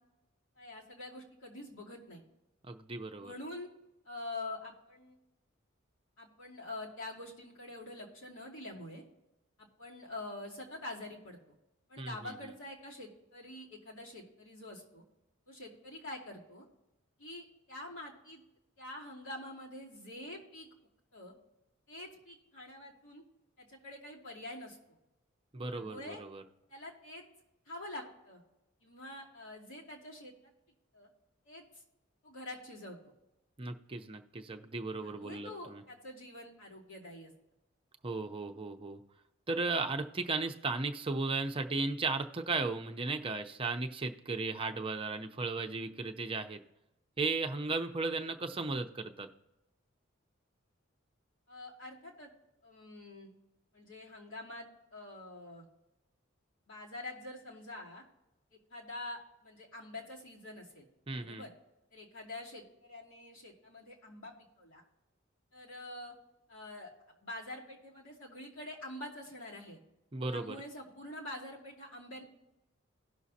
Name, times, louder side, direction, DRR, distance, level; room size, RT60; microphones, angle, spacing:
voice 1, 0.6-2.2 3.2-3.7 4.0-5.2 6.2-9.0 9.6-11.5 11.9-15.0 15.5-16.7 17.2-18.4 18.8-20.7 21.1-21.3 21.9-23.2 23.6-24.8 25.7-26.2 26.7-27.2 27.7-28.4 28.8-30.5 30.9-31.1 31.4-31.8 32.2-33.0 35.0-37.3 51.5-52.3 52.6-53.3 53.7-55.6 56.7-58.0 58.5-60.9 61.2-61.5 61.9-64.8 65.5-66.1 66.5-66.9 67.2-69.8 70.3-72.2, left 1 dB, 80° left, -3 dB, 2.6 m, -46 dB
voice 2, 2.6-3.3 12.0-12.1 25.5-26.4 33.6-35.8 38.0-39.0 39.5-46.6 47.2-49.3 61.1-61.4 70.1-70.6, right 3 dB, 25° right, 4 dB, 0.6 m, -35 dB
17.5 x 6.2 x 2.8 m, 0.96 s
head